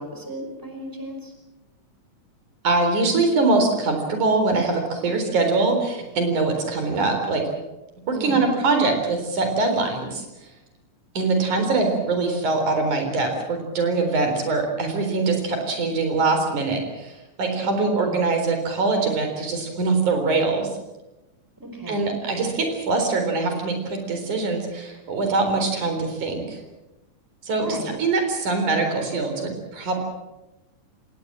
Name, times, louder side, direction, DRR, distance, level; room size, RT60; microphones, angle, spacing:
voice 1, 0.0-1.3 8.1-8.6 17.6-18.3 21.6-22.1 27.6-28.0, equal, 5° right, 3 dB, 5.1 m, -33 dB
voice 2, 2.6-7.4 8.1-10.3 11.2-20.7 21.9-26.6 27.4-29.9, right 3 dB, 85° right, 5 dB, 5.4 m, -23 dB
25.5 x 19.5 x 7.6 m, 1.0 s
omnidirectional pair, 3.4 m